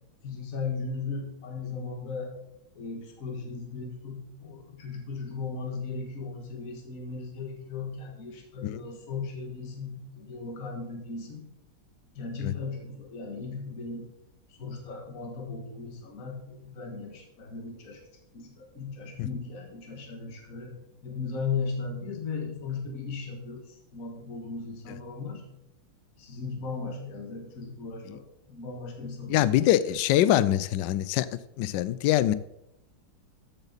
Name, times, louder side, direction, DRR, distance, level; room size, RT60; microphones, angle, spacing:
voice 1, 0.2-2.3 2.8-11.5 12.1-14.1 14.6-18.0 18.3-20.7 21.0-23.6 23.9-25.4 26.2-29.5, left 4 dB, 40° left, 2 dB, 2.0 m, -37 dB
voice 2, 29.3-32.3, left 13 dB, 75° left, 16 dB, 1.1 m, -24 dB
13.5 x 8.1 x 4.1 m, 0.82 s
omnidirectional pair, 2.3 m